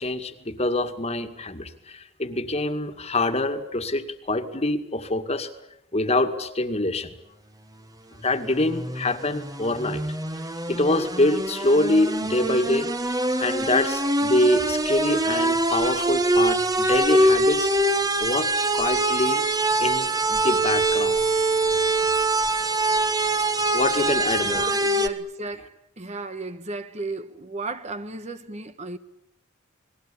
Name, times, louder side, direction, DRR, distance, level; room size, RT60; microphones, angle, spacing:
voice 1, 0.0-5.5 5.9-7.1 8.2-10.0 10.7-12.9 13.3-17.7 18.2-19.4 19.8-21.2 23.7-24.7, left 1 dB, 30° left, 2.0 m, -25 dB
sound 1, 8.3-25.1, right 2 dB, 20° right, 1.4 m, -24 dB
voice 2, 24.3-29.0, right 3 dB, 35° right, 1.2 m, -34 dB
29.5 x 21.0 x 8.5 m
head